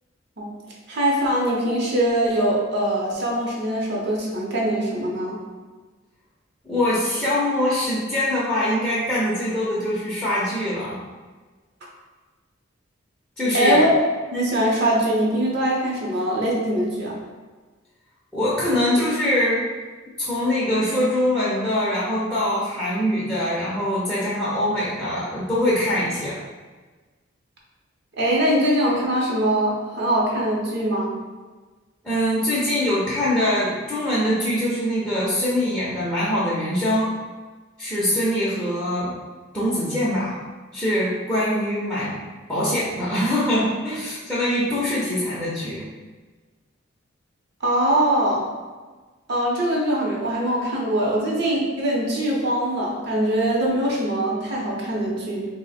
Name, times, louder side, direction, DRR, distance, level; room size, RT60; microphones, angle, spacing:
voice 1, 0.9-5.4 13.5-14.0 14.3-17.1 28.2-31.1 47.6-48.4 49.3-55.5, right 1 dB, 55° right, -3 dB, 0.7 m, -22 dB
voice 2, 6.6-11.0 13.4-13.8 18.3-19.6 20.2-26.3 32.0-37.1 37.8-39.1 39.5-40.3 40.7-42.1 42.5-45.9, left 1 dB, 5° left, -10 dB, 0.6 m, -23 dB
3.0 x 2.1 x 4.1 m, 1.3 s
head